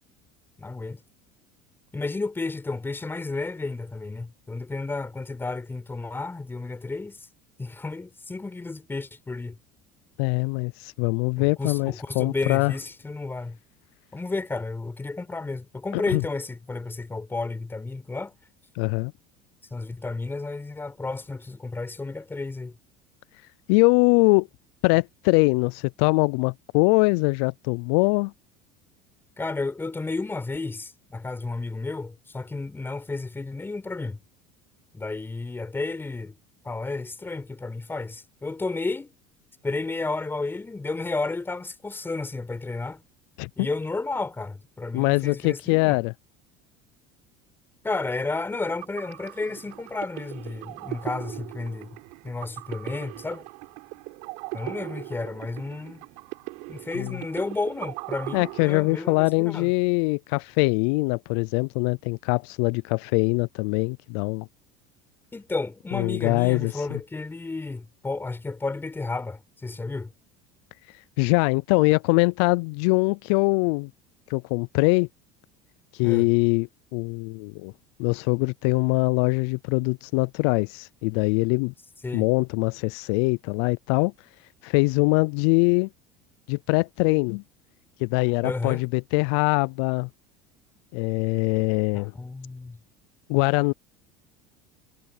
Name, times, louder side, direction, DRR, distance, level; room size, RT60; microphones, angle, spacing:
voice 1, 0.6-1.0 1.9-7.2 7.6-9.6 11.4-13.6 14.1-18.3 19.7-22.7 29.4-34.2 34.9-36.4 36.6-39.1 39.6-43.0 43.6-46.0 47.8-52.0 52.2-53.4 54.5-56.0 56.7-59.7 65.3-70.1 76.0-76.3 82.0-82.3 88.4-88.8 91.9-92.8, left 3 dB, 15° left, 5.0 m, -32 dB
voice 2, 10.2-12.7 15.9-16.2 18.8-19.1 23.7-24.5 24.8-28.3 43.4-43.5 44.9-46.1 56.9-57.2 58.3-64.5 65.9-67.0 71.2-73.9 74.3-75.1 75.9-77.7 78.0-81.7 82.1-84.1 84.6-85.9 86.5-87.4 88.0-90.1 90.9-92.1 93.3-93.7, left 30 dB, 70° left, 0.4 m, -23 dB
sound 1, 48.5-59.3, right 29 dB, 70° right, 4.7 m, -40 dB
supercardioid pair, 90°, 14 cm